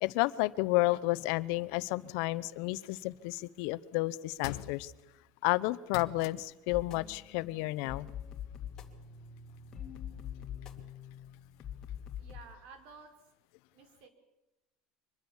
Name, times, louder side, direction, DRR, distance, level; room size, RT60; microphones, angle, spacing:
voice 1, 0.0-4.9 5.4-8.1, left 20 dB, 70° left, 17 dB, 0.8 m, -31 dB
sound 1, 2.7-3.4 4.4-5.1 5.9-6.6 8.4-8.5, left 13 dB, 90° left, 1.1 m, -44 dB
sound 2, 6.7-12.4, left 9 dB, 30° left, 2.5 m, -44 dB
voice 2, 12.2-13.1 13.7-14.1, right 5 dB, 65° right, 8 dB, 4.5 m, -52 dB
24.0 x 21.0 x 7.2 m, 0.98 s
cardioid pair, 145°, 2 cm